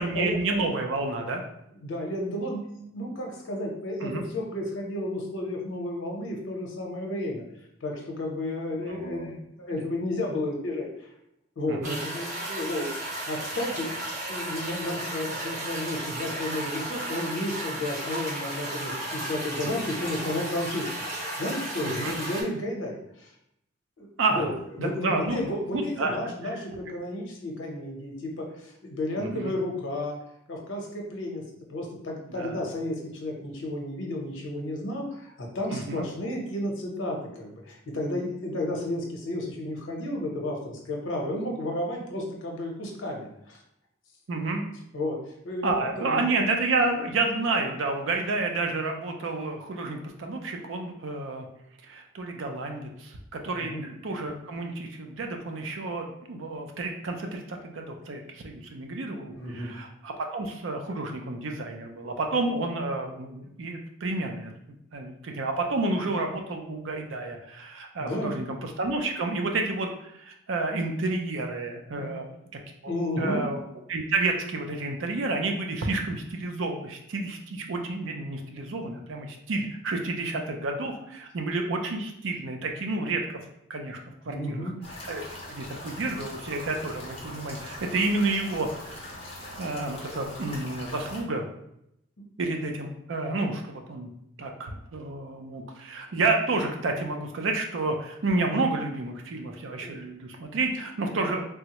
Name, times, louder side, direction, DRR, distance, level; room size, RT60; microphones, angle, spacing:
voice 1, 0.0-1.4 4.0-4.2 8.9-9.4 9.7-9.8 11.7-12.0 21.8-22.2 24.2-24.5 24.8-25.4 25.7-26.2 29.2-29.5 32.3-32.6 35.7-36.1 44.3-44.6 45.6-51.5 51.8-64.5 64.9-72.3 72.8-72.9 73.2-73.6 73.9-83.4 83.7-84.0 84.2-84.7 85.1-85.2 85.5-89.1 89.6-91.5 92.4-94.1 94.4-101.4, right 3 dB, 80° right, 3 dB, 0.5 m, -30 dB
voice 2, 1.8-7.4 7.8-11.1 11.6-12.9 13.2-13.9 14.3-23.3 24.0-24.5 24.8-30.2 30.5-31.4 31.7-43.6 44.9-46.3 53.5-53.8 59.3-59.7 68.0-68.4 71.9-72.1 72.9-73.4 84.3-84.7 92.2-92.3 99.8-99.9, left 1 dB, 80° left, 0 dB, 0.7 m, -32 dB
sound 1, 11.8-22.4, right 1 dB, 40° right, 1.0 m, -34 dB
sound 2, 84.8-91.2, left 1 dB, 30° left, 0.6 m, -41 dB
3.4 x 2.0 x 2.9 m, 0.79 s
head